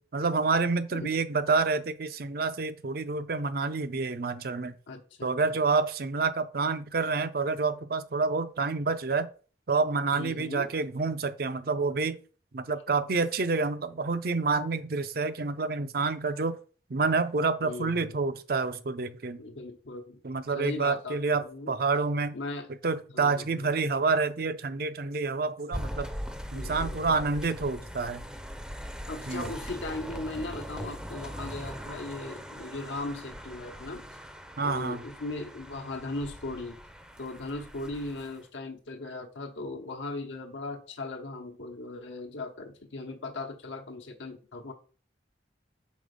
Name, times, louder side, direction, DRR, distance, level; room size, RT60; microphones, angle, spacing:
voice 1, 0.1-4.8 5.2-9.3 9.7-12.2 12.5-16.6 16.9-19.4 20.2-22.3 22.8-26.1 26.5-28.2 29.3-29.4 34.6-35.0, right 4 dB, 50° right, 0.5 m, -28 dB
voice 2, 4.9-5.6 10.1-10.7 17.6-18.2 19.4-20.2 20.5-21.7 22.3-22.7 23.1-23.7 26.5-27.0 29.1-34.0 34.6-36.8 37.2-44.7, left 2 dB, 85° left, 1.0 m, -38 dB
sound 1, 25.7-38.4, equal, 5° right, 0.5 m, -40 dB
5.3 x 4.0 x 5.1 m
head